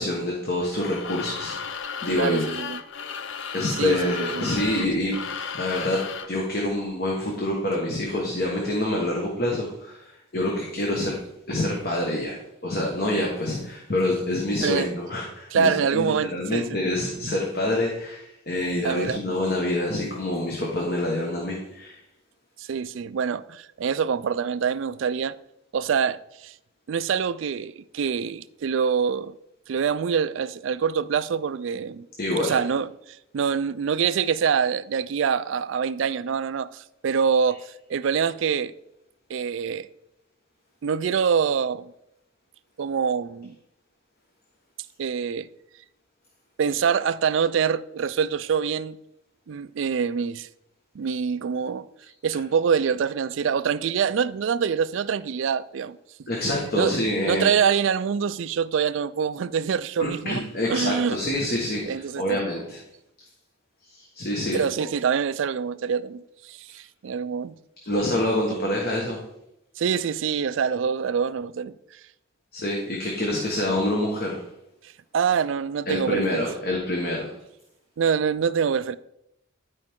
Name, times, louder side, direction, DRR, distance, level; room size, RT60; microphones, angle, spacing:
voice 1, 0.0-2.5 3.5-6.0 6.3-11.2 11.5-22.0 32.2-32.6 56.3-57.5 60.0-62.8 63.9-64.6 67.8-69.2 72.5-74.4 75.9-77.3, left 1 dB, 50° left, 1.4 m, -26 dB
sound 1, 0.6-6.4, left 6 dB, 65° left, 0.6 m, -34 dB
voice 2, 2.1-2.8 3.8-4.5 14.6-14.9 15.5-16.7 18.8-19.2 22.6-25.4 25.7-26.5 26.9-29.3 29.7-32.1 32.4-38.7 39.3-39.9 40.8-41.9 42.8-43.6 45.0-45.5 46.6-49.0 49.5-50.5 50.9-51.9 52.2-56.0 56.4-56.9 57.3-62.4 64.5-67.5 69.8-72.0 74.8-76.4 78.0-78.9, right 6 dB, 70° right, 0.4 m, -25 dB
12.0 x 4.9 x 3.6 m
head